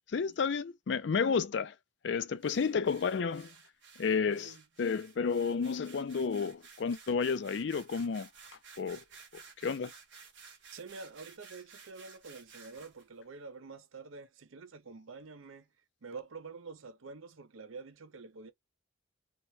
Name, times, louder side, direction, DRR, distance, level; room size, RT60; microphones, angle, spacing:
voice 1, 0.1-1.7 2.0-3.5 4.0-8.3 8.8-9.0 9.3-9.9, left 5 dB, 60° left, 0.4 m, -31 dB
sound 1, 2.4-13.1, right 5 dB, 65° right, 1.3 m, -55 dB
voice 2, 4.1-4.6 10.7-15.7 16.0-18.5, right 4 dB, 80° right, 0.6 m, -47 dB
2.9 x 2.9 x 3.1 m
head